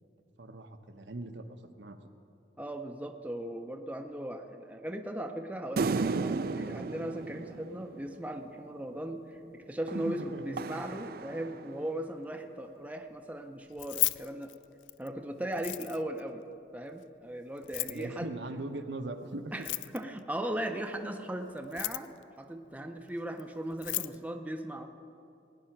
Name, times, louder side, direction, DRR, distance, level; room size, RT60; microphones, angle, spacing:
voice 1, 0.4-2.0 9.9-10.6 17.8-19.5, right 2 dB, 80° right, 6 dB, 0.9 m, -40 dB
voice 2, 2.6-14.5 15.0-16.4 16.7-18.3 19.5-22.1 22.4-24.9, right 1 dB, 10° right, 5 dB, 0.6 m, -38 dB
sound 1, 5.8-8.4 9.9-12.0, right 4 dB, 55° right, 0.4 m, -35 dB
Keys jangling, 13.7-15.1 15.5-16.2 17.6-18.0 19.5-20.2 21.6-22.2 23.4-23.5 23.7-24.2, left 19 dB, 90° left, 0.3 m, -34 dB
18.0 x 9.9 x 5.9 m, 2.7 s
head